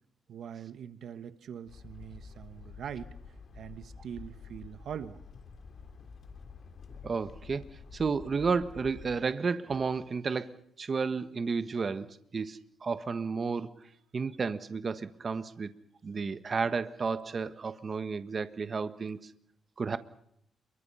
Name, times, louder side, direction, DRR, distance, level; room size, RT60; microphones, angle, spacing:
voice 1, 0.3-3.1 3.5-5.2, right 8 dB, 70° right, 1.4 m, -42 dB
sound 1, 1.7-9.2, left 5 dB, 50° left, 3.5 m, -49 dB
voice 2, 7.0-7.7 7.9-15.7 16.0-19.3 19.8-20.0, right 5 dB, 35° right, 1.4 m, -32 dB
28.0 x 23.5 x 5.7 m
cardioid pair, 120°, 0 cm